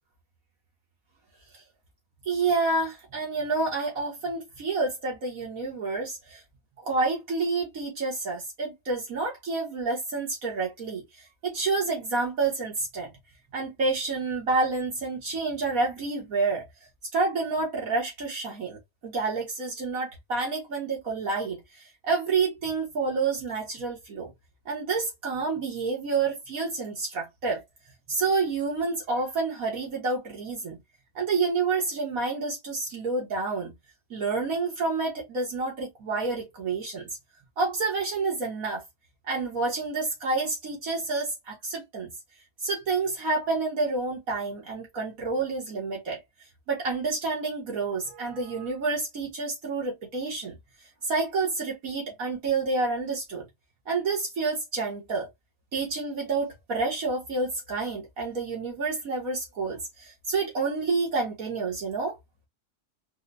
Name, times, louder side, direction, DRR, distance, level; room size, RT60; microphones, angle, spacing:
voice 1, 2.3-6.4 6.8-11.0 11.4-13.1 13.5-16.7 17.1-21.6 22.0-24.3 24.7-27.6 28.1-30.8 31.2-33.7 34.1-37.1 37.6-38.8 39.3-42.1 42.6-46.2 46.7-50.6 51.0-53.5 53.9-55.3 55.7-62.2, right 3 dB, 65° right, 1.9 m, -29 dB
4.8 x 2.2 x 2.5 m
omnidirectional pair, 1.6 m